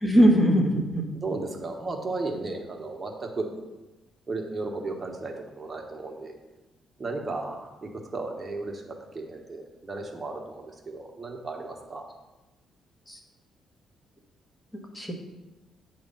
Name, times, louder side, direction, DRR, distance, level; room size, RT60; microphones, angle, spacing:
voice 1, 0.0-1.0 13.1-13.2 14.9-15.1, equal, 10° left, 1 dB, 1.2 m, -20 dB
voice 2, 1.2-3.5 4.3-6.3 7.0-12.0, right 3 dB, 25° right, 1 dB, 1.1 m, -35 dB
8.2 x 3.1 x 5.4 m, 1.1 s
cardioid pair, 90°, 0 cm